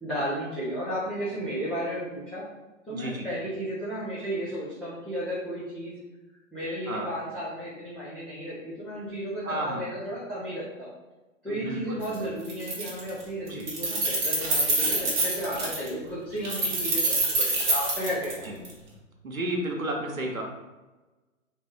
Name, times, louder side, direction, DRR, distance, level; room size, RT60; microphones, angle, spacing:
voice 1, 0.0-2.4 2.9-5.9 6.5-10.9 11.4-18.5, equal, 5° left, -14 dB, 0.8 m, -33 dB
voice 2, 2.9-3.3 6.9-7.1 9.4-9.9 11.5-12.3 13.5-13.7 18.4-18.6 19.2-20.4, right 1 dB, 85° right, 1 dB, 1.1 m, -32 dB
Keys jangling, 12.0-12.2 12.5-13.2 13.5-15.9 16.4-18.7, right 2 dB, 35° right, 1.2 m, -26 dB
4.1 x 3.0 x 3.6 m, 1.2 s
figure-of-eight pair, 130°, 40 cm